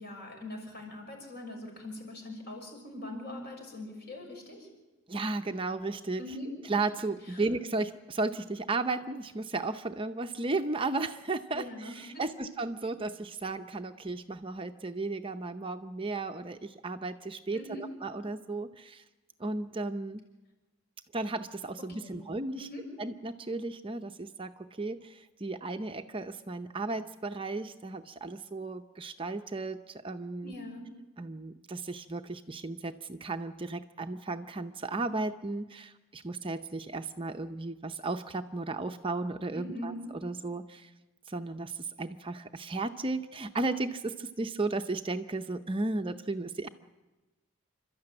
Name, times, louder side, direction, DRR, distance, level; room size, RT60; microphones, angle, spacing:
voice 1, 0.0-4.7 6.2-6.5 11.5-12.4 17.5-17.8 22.0-22.2 22.6-22.8 30.4-30.9 39.5-40.0, left 1 dB, 50° left, 1 dB, 6.3 m, -42 dB
voice 2, 5.1-6.2 6.7-19.0 19.4-20.2 21.1-22.7 23.0-30.5 31.2-40.9 41.3-46.7, right 3 dB, 25° right, 7 dB, 0.6 m, -34 dB
28.5 x 13.0 x 8.7 m, 1.2 s
head